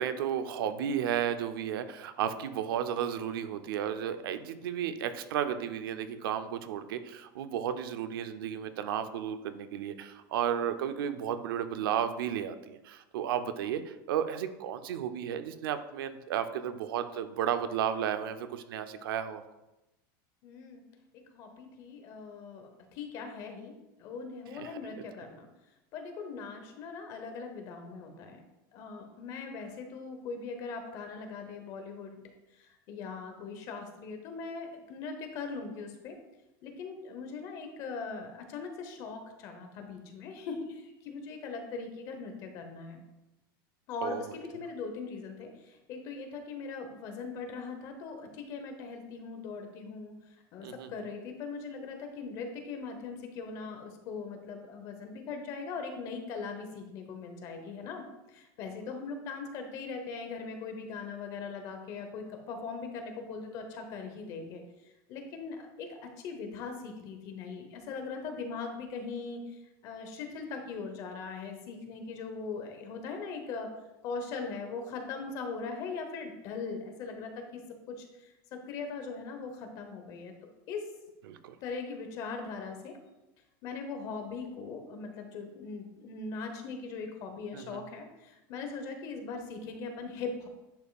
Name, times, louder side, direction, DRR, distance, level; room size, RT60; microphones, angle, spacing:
voice 1, 0.0-19.4 24.5-25.0 44.0-44.3 50.6-50.9 81.3-81.6 87.5-87.8, right 9 dB, 85° right, 9 dB, 0.6 m, -33 dB
voice 2, 20.4-20.8 21.3-23.7 24.0-25.5 25.9-28.4 28.7-32.2 32.5-36.2 36.6-43.0 43.9-50.1 50.5-64.6 65.1-66.0 66.2-73.7 74.0-80.8 81.6-83.0 83.6-90.5, left 4 dB, 30° left, 5 dB, 0.9 m, -40 dB
10.0 x 5.4 x 2.4 m, 0.97 s
supercardioid pair, 180°, 12 cm